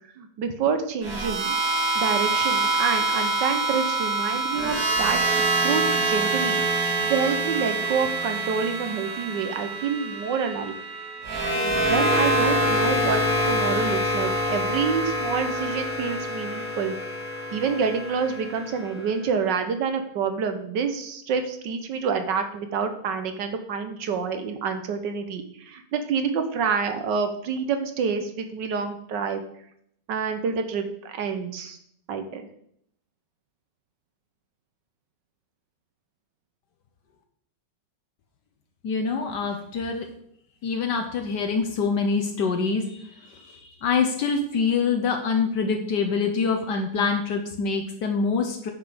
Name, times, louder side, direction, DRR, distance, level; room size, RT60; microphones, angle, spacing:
voice 1, 0.2-1.6 1.9-10.7 11.6-13.2 13.5-16.9 17.5-29.4 30.1-31.8 32.1-32.4, right 6 dB, 75° right, 7 dB, 1.6 m, -28 dB
sound 1, 1.0-19.2, right 2 dB, 50° right, 2.3 m, -25 dB
voice 2, 38.8-40.1 40.6-48.7, left 5 dB, 70° left, 4 dB, 1.5 m, -25 dB
9.4 x 6.0 x 5.0 m, 0.70 s
omnidirectional pair, 1.9 m